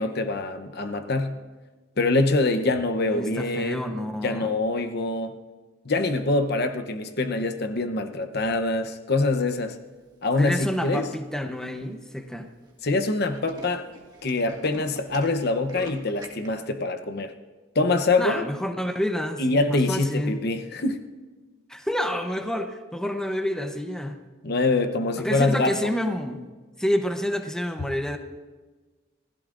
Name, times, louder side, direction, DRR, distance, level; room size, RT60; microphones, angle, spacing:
voice 1, 0.0-1.4 2.0-3.8 4.2-5.3 5.8-9.8 10.2-11.1 12.8-13.9 14.2-17.3 17.7-18.5 19.4-21.0 24.4-25.9, left 2 dB, 55° left, 8 dB, 0.8 m, -24 dB
voice 2, 3.0-4.5 10.4-12.5 18.2-20.4 21.7-24.2 25.2-26.4 26.8-28.2, equal, 5° left, 5 dB, 0.8 m, -28 dB
Tools, 10.4-10.8 11.4-11.5 11.8-11.9 12.1-12.3 12.6-12.7 13.0-16.5, right 1 dB, 20° right, 1.6 m, -44 dB
26.5 x 16.0 x 2.5 m, 1.3 s
head